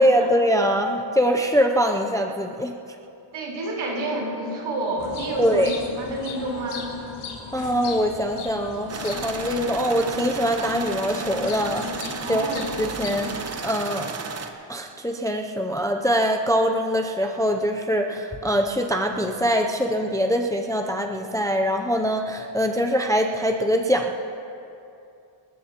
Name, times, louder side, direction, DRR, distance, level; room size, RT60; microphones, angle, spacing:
voice 1, 0.0-2.7 5.4-5.7 7.5-13.3 13.6-14.1 14.7-24.2, equal, 5° left, 3 dB, 0.4 m, -23 dB
voice 2, 3.3-6.9 12.2-12.6, right 1 dB, 75° right, -2 dB, 4.1 m, -29 dB
sound 1, 5.0-13.4, left 5 dB, 90° left, 2.7 m, -37 dB
sound 2, 8.9-14.5, right 5 dB, 30° right, 0.9 m, -34 dB
27.0 x 14.0 x 2.9 m, 2.6 s
wide cardioid pair, 175°, 50 cm